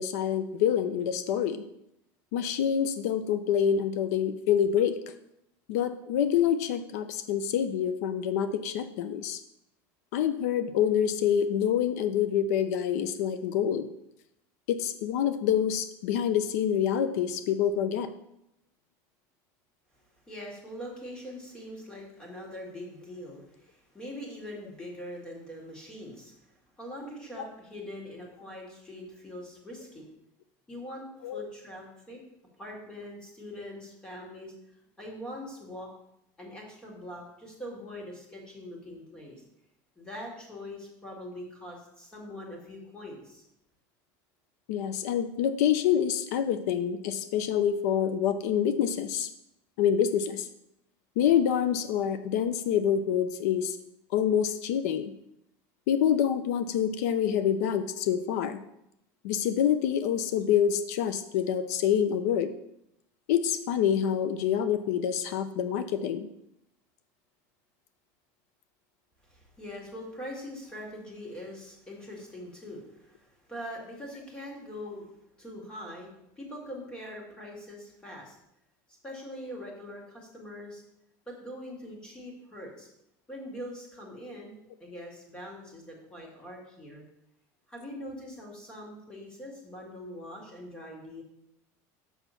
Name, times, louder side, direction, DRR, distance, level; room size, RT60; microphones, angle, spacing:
voice 1, 0.0-1.6 2.3-5.0 5.7-9.4 10.1-13.9 14.7-18.1 27.4-27.5 31.2-31.4 44.7-49.3 49.8-50.5 51.2-53.8 54.1-55.1 55.9-58.6 59.2-62.5 63.3-66.3, left 9 dB, 80° left, 11 dB, 0.6 m, -26 dB
voice 2, 20.3-26.3 26.8-30.0 30.7-32.2 32.6-34.5 35.0-35.9 36.4-39.4 40.0-43.4 69.2-75.1 75.4-76.1 76.4-78.4 79.0-80.8 81.3-82.9 83.3-84.5 84.8-87.0 87.7-91.2, left 1 dB, 10° left, -1 dB, 1.9 m, -42 dB
6.3 x 5.8 x 6.8 m, 0.80 s
cardioid pair, 175°, 8 cm